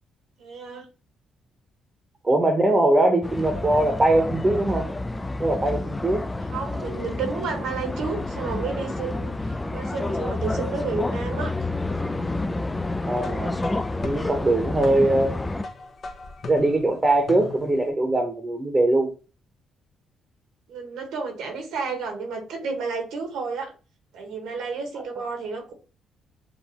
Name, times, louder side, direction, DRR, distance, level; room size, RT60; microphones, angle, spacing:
voice 1, 0.4-0.9 6.5-11.5 20.7-23.7 24.1-25.7, right 4 dB, 85° right, 4 dB, 1.4 m, -31 dB
voice 2, 2.2-4.9 5.4-6.2 13.1-13.6 14.0-15.4 16.5-19.1, right 2 dB, 20° right, 4 dB, 0.9 m, -21 dB
sound 1, 3.2-15.6, left 2 dB, 15° left, 0.4 m, -29 dB
sound 2, 13.2-17.9, left 3 dB, 45° left, 0.8 m, -39 dB
6.9 x 2.6 x 2.9 m, 0.34 s
cardioid pair, 90°, 0 cm